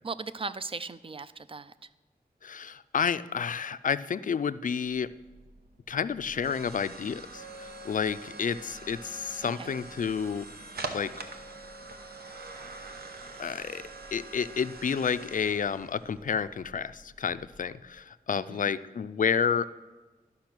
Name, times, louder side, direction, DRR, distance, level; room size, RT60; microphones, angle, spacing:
voice 1, 0.0-1.7 9.4-9.7 18.3-18.7, right 4 dB, 35° right, 13 dB, 0.4 m, -38 dB
voice 2, 2.4-5.1 5.9-10.4 10.9-11.1 13.4-13.8 14.1-19.7, left 6 dB, 55° left, 14 dB, 0.4 m, -30 dB
sound 1, 5.1-17.9, right 3 dB, 80° right, 1.0 m, -44 dB
12.0 x 5.7 x 6.0 m, 1.2 s
wide cardioid pair, 90°, 16 cm